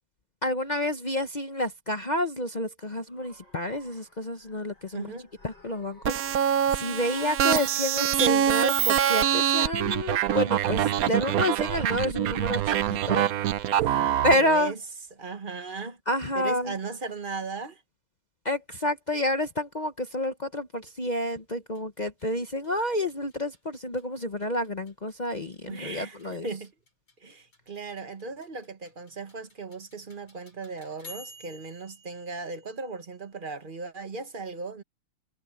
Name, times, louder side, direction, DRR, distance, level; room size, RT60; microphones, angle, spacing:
voice 1, 0.4-5.1 5.4-13.3 13.8-14.0 14.2-14.7 16.1-16.8 18.4-26.5, left 1 dB, 40° left, 0.6 m, -29 dB
sound 1, 3.1-8.3, left 1 dB, 60° left, 7.3 m, -55 dB
voice 2, 4.9-5.3 13.9-14.8 15.2-16.0 16.3-17.8 25.7-26.7 27.2-34.8, right 4 dB, 30° right, 1.3 m, -37 dB
sound 2, 6.0-14.3, right 10 dB, 65° right, 0.9 m, -24 dB
sound 3, 20.9-33.5, left 1 dB, 90° left, 8.8 m, -54 dB
omnidirectional pair, 2.2 m